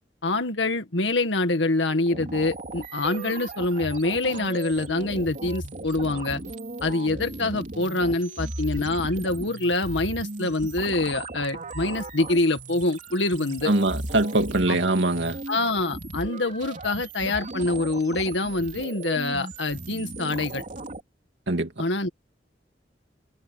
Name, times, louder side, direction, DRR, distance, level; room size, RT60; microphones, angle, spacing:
voice 1, 0.2-6.4 6.8-13.7 14.7-14.8 15.5-20.6 21.8-22.1, left 2 dB, 90° left, 1.9 m, -25 dB
sound 1, 1.9-21.0, right 2 dB, 45° right, 3.6 m, -37 dB
voice 2, 13.6-15.4 21.5-21.8, right 2 dB, 80° right, 2.5 m, -23 dB
head